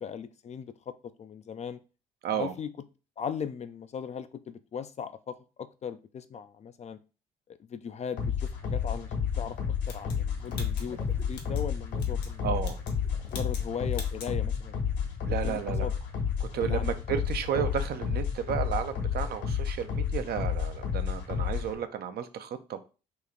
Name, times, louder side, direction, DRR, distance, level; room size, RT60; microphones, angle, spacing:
voice 1, 0.0-1.8 2.3-2.7 3.2-7.0 7.5-9.6 9.9-11.0 11.3-12.5 13.2-14.8 15.4-15.9 16.7-16.9, left 7 dB, 35° left, 12 dB, 0.4 m, -38 dB
voice 2, 2.2-2.5 12.4-12.8 15.3-15.9 16.4-22.8, right 8 dB, 50° right, 9 dB, 0.5 m, -33 dB
sound 1, 8.2-21.8, left 7 dB, 60° left, 1.2 m, -31 dB
sound 2, 9.9-11.7 12.0-12.3 12.6-13.0 13.3-13.7 13.9-14.3, left 4 dB, 85° left, 0.6 m, -45 dB
sound 3, 10.8-15.5, left 2 dB, 10° left, 0.7 m, -48 dB
3.1 x 2.9 x 3.7 m, 0.33 s
hypercardioid pair, 45°, 20 cm